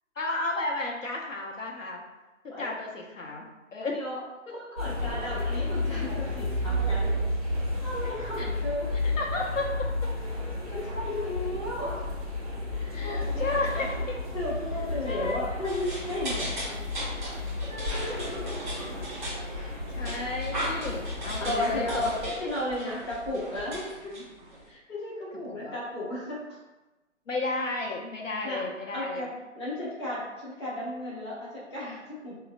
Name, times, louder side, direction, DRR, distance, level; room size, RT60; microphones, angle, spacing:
voice 1, 0.2-2.0 2.4-4.0 8.4-8.5 9.2-9.9 12.9-14.2 15.0-15.5 17.7-18.5 18.8-18.9 19.4-22.5 24.1-24.2 25.5-25.8 27.3-29.2, left 2 dB, 80° left, -1 dB, 0.7 m, -32 dB
voice 2, 3.9-7.3 7.8-8.9 10.7-12.1 12.7-13.8 14.3-16.8 20.7-20.9 21.4-22.0 22.4-24.1 24.7-26.6 28.4-28.7 28.9-29.3 29.5-32.4, left 1 dB, 25° left, -8 dB, 0.6 m, -35 dB
sound 1, 4.8-22.3, left 1 dB, 30° right, 0.4 m, -32 dB
sound 2, 15.6-24.7, equal, 15° right, 0.8 m, -37 dB
3.7 x 2.0 x 2.4 m, 1.1 s
figure-of-eight pair, 145°, 38 cm